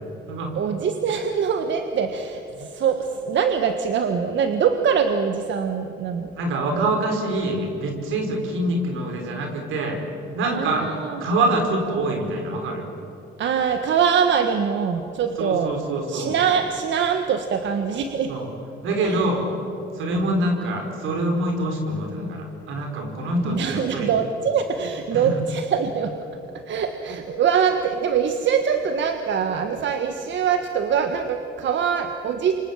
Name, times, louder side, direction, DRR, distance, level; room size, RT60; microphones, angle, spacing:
voice 1, 0.5-6.3 6.8-6.9 10.4-11.2 13.4-15.7 16.1-18.3 19.0-19.2 20.1-20.4 23.4-26.1 26.7-32.6, right 7 dB, 65° right, 6 dB, 1.6 m, -23 dB
voice 2, 6.4-10.0 10.3-12.9 15.4-16.4 18.3-18.5 18.8-19.4 19.9-24.2 25.1-25.4, right 1 dB, 90° right, 3 dB, 5.3 m, -25 dB
28.5 x 25.5 x 7.6 m, 2.9 s
cardioid pair, 90°, 20 cm